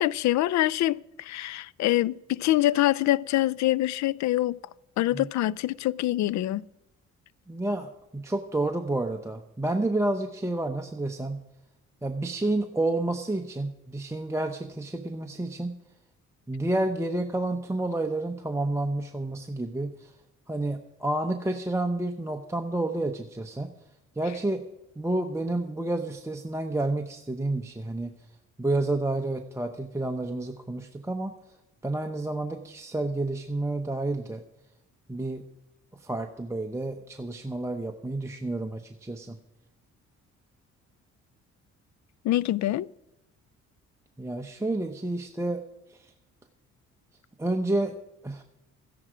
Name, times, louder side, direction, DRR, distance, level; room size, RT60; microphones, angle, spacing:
voice 1, 0.0-4.6 5.0-6.6 42.2-42.9, left 15 dB, 65° left, 0.4 m, -25 dB
voice 2, 7.5-11.4 12.0-15.7 16.5-20.1 20.5-23.7 24.2-24.6 25.0-28.1 28.6-31.3 31.8-34.4 35.1-35.4 36.0-39.4 44.2-45.6 45.9-46.1 47.4-47.9 48.2-48.4, right 2 dB, 10° right, 0.8 m, -30 dB
13.5 x 10.5 x 5.0 m
cardioid pair, 90°, 30 cm